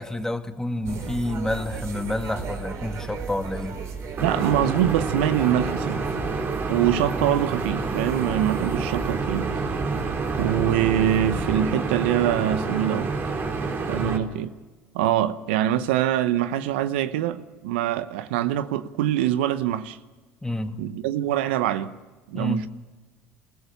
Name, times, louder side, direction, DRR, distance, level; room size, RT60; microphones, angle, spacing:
voice 1, 0.0-3.8 7.0-7.1 14.0-14.1 20.4-20.8 22.3-22.7, left 1 dB, 10° left, 2.0 m, -29 dB
sound 1, 0.8-11.6, right 5 dB, 55° right, 4.2 m, -35 dB
sound 2, 4.2-14.2, right 4 dB, 40° right, 3.9 m, -28 dB
voice 2, 4.2-6.0 6.7-9.5 10.4-13.1 13.9-14.5 14.9-20.0 20.8-22.0 22.3-22.7, right 11 dB, 80° right, 0.9 m, -24 dB
28.5 x 16.0 x 6.8 m
hypercardioid pair, 75°, 6 cm